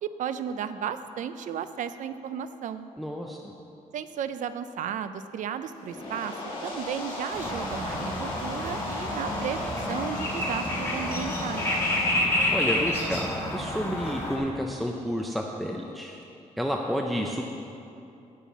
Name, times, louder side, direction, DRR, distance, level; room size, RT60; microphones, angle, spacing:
voice 1, 0.0-2.9 3.9-6.3 6.6-11.7, right 8 dB, 70° right, 12 dB, 0.5 m, -34 dB
voice 2, 3.0-3.5 12.5-16.2 16.6-17.4, equal, ahead, 1 dB, 0.5 m, -30 dB
sound 1, 5.7-12.1, left 1 dB, 40° left, 2.6 m, -35 dB
sound 2, 7.3-14.4, left 1 dB, 20° left, 1.7 m, -29 dB
17.0 x 5.6 x 4.2 m, 2.7 s
wide cardioid pair, 145°, 13 cm